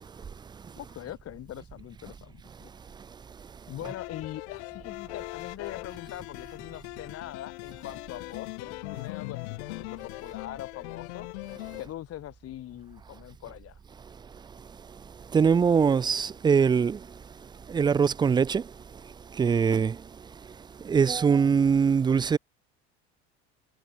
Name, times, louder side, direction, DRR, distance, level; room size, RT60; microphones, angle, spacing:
voice 1, 0.8-2.7 3.7-11.3 11.8-13.8, left 13 dB, 45° left, 1.3 m, -42 dB
sound 1, 3.8-11.9, left 25 dB, 75° left, 2.5 m, -40 dB
voice 2, 15.3-17.1 17.7-18.7 19.3-20.0 20.8-22.4, right 6 dB, 15° right, 0.3 m, -22 dB
hypercardioid pair, 90°, 34 cm